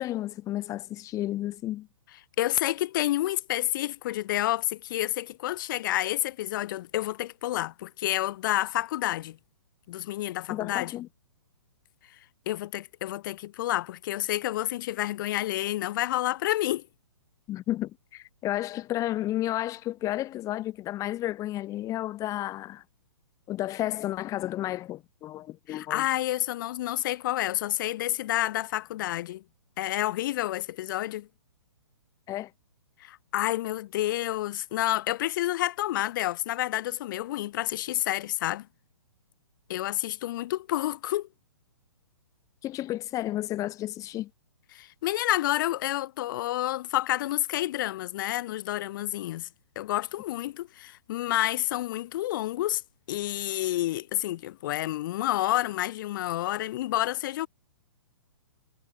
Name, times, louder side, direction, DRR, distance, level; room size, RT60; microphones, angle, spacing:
voice 1, 0.0-1.9 10.5-11.1 17.5-22.8 23.5-26.0 32.3-32.5 42.6-44.3, left 14 dB, 20° left, 2.2 m, -32 dB
voice 2, 2.4-9.4 9.9-10.9 12.4-16.8 25.7-29.4 29.8-31.3 33.0-38.7 39.7-41.3 44.7-49.5 49.7-52.8 53.1-57.5, left 15 dB, 45° left, 1.6 m, -29 dB
hypercardioid pair, 135°, 15 cm